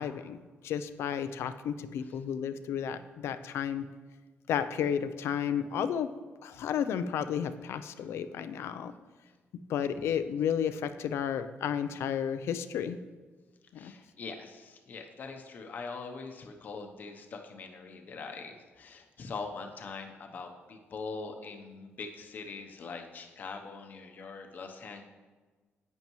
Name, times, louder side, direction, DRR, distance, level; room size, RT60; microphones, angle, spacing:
voice 1, 0.0-3.8 4.5-6.1 6.4-8.9 9.7-13.0 13.7-13.9, left 8 dB, 85° left, 11 dB, 0.5 m, -32 dB
voice 2, 13.8-25.0, left 4 dB, 45° left, 4 dB, 0.8 m, -42 dB
10.5 x 8.7 x 3.1 m, 1.3 s
wide cardioid pair, 170°, 4 cm